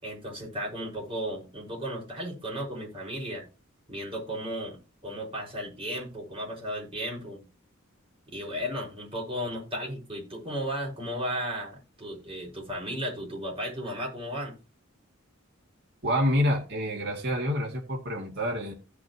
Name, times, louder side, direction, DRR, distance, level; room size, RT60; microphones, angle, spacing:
voice 1, 0.0-3.5 3.9-7.5 8.3-14.6, equal, 25° right, 5.4 m, -35 dB
voice 2, 16.0-18.7, equal, 55° right, 2.4 m, -27 dB
16.0 x 6.4 x 3.0 m
head